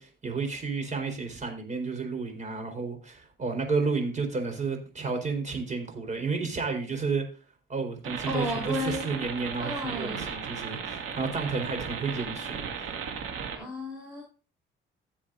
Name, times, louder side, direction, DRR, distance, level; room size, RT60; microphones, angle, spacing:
voice 1, 0.0-7.2 7.7-12.9, right 4 dB, 40° right, 4.3 m, -31 dB
sound 1, 8.0-13.6, right 6 dB, 90° right, 2.2 m, -36 dB
voice 2, 8.3-9.1 9.6-10.3 13.5-14.2, left 1 dB, ahead, 5.6 m, -33 dB
16.5 x 7.4 x 2.6 m
cardioid pair, 90°, 20 cm